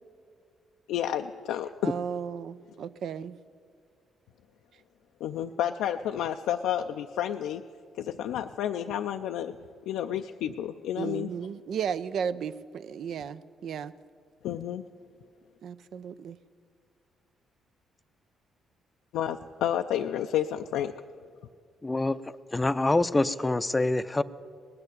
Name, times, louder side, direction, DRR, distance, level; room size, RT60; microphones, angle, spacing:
voice 1, 0.9-1.7 5.2-7.6 8.0-9.6 9.9-11.3 14.4-14.8 19.1-20.9, left 10 dB, 90° left, 5 dB, 0.4 m, -30 dB
voice 2, 1.8-3.4 11.0-13.9 15.6-16.4, right 7 dB, 65° right, 15 dB, 0.5 m, -34 dB
voice 3, 21.8-22.2 22.5-24.2, left 2 dB, 15° left, 14 dB, 0.5 m, -25 dB
18.5 x 6.8 x 9.8 m, 2.1 s
cardioid pair, 90°, 0 cm